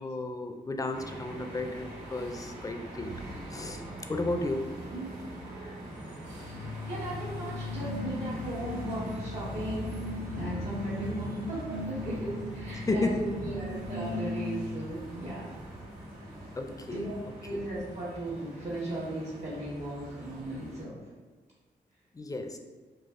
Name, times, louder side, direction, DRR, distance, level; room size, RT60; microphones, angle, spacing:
voice 1, 0.0-3.1 3.5-3.8 4.1-4.6 12.8-13.2 16.6-17.1 17.5-17.6 22.1-22.6, left 2 dB, 20° left, 5 dB, 0.4 m, -33 dB
sound 1, 0.9-20.8, right 1 dB, 90° right, 1.3 m, -42 dB
sound 2, 6.4-14.9, left 2 dB, 80° left, 1.2 m, -38 dB
voice 2, 6.9-9.9 10.3-15.5 16.9-17.1 17.4-21.0, right 1 dB, 60° right, -7 dB, 1.2 m, -37 dB
4.0 x 2.4 x 2.4 m, 1.3 s
supercardioid pair, 45°, 19 cm